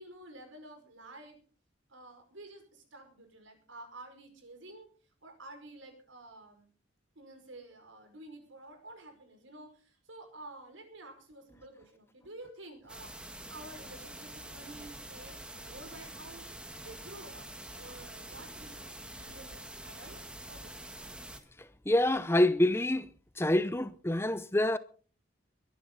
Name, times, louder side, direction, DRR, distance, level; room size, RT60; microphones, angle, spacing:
voice 1, 0.0-1.4 1.9-4.9 5.2-6.7 7.2-20.2 20.5-20.9, right 2 dB, 85° right, 5.5 m, -51 dB
sound 1, 12.9-21.4, right 1 dB, 5° right, 1.6 m, -46 dB
voice 2, 21.6-23.1 23.4-24.8, left 1 dB, 10° left, 0.6 m, -27 dB
22.5 x 11.0 x 4.0 m
head